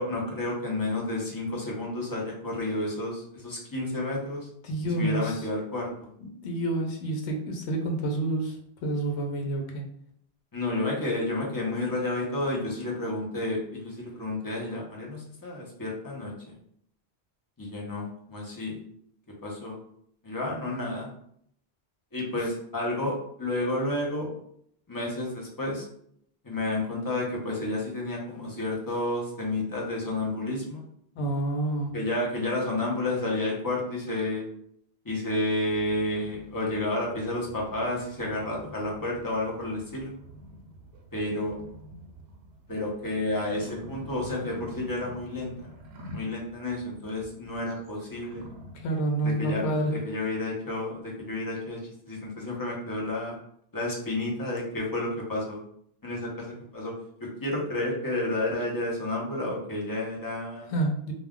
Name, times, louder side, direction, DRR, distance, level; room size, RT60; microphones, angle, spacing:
voice 1, 0.0-4.5 4.8-6.1 10.5-16.5 17.6-18.8 19.4-19.8 20.2-21.1 22.1-24.3 24.9-25.8 26.4-30.8 31.9-34.5 35.0-40.1 41.1-41.6 42.7-45.5 46.1-48.5 49.2-49.6 49.9-51.8 52.1-53.4 53.7-55.6 56.0-56.9 57.2-60.7, left 2 dB, 25° left, -3 dB, 0.5 m, -31 dB
voice 2, 4.6-5.4 6.2-8.6 8.8-9.8 31.2-31.9 48.7-49.9 60.7-61.1, right 2 dB, 75° left, 2 dB, 0.9 m, -28 dB
sound 1, 35.7-48.9, equal, 70° right, 0.8 m, -47 dB
2.2 x 2.1 x 3.5 m, 0.69 s
omnidirectional pair, 1.1 m